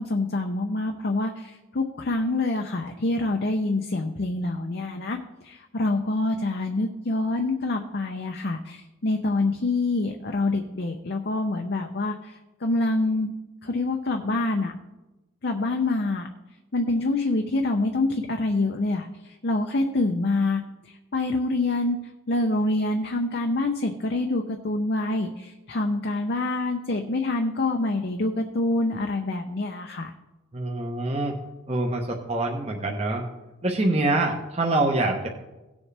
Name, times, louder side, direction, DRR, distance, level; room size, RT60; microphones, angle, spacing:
voice 1, 0.0-5.2 5.4-13.3 13.6-14.7 15.4-16.3 16.7-22.0 22.3-30.1, left 2 dB, 50° left, 3 dB, 0.6 m, -26 dB
voice 2, 30.5-31.4 31.7-33.2 33.6-35.3, right 2 dB, 30° right, 1 dB, 0.9 m, -25 dB
17.0 x 7.2 x 3.3 m, 1.1 s
head